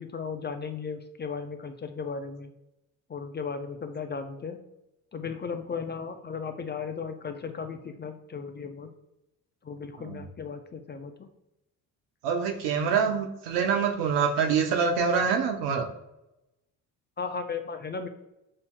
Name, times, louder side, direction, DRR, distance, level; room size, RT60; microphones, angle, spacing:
voice 1, 0.0-2.5 3.1-4.6 5.1-8.9 9.6-11.3 17.2-18.1, left 5 dB, 25° left, 7 dB, 0.5 m, -36 dB
voice 2, 12.2-15.9, right 6 dB, 70° right, 3 dB, 0.9 m, -25 dB
7.6 x 2.7 x 2.2 m, 0.90 s
hypercardioid pair, 55°, 43 cm